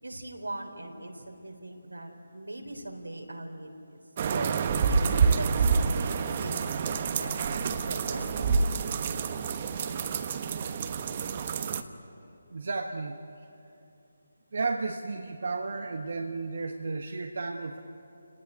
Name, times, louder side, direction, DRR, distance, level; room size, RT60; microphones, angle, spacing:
voice 1, 0.0-4.0 4.3-8.9, right 1 dB, 90° right, 3 dB, 3.8 m, -40 dB
sound 1, 4.2-11.8, right 5 dB, 35° right, 1.1 m, -28 dB
voice 2, 12.5-13.5 14.5-17.8, right 3 dB, 60° right, 3 dB, 1.4 m, -33 dB
30.0 x 19.0 x 9.1 m, 2.8 s
figure-of-eight pair, 155°, 0 cm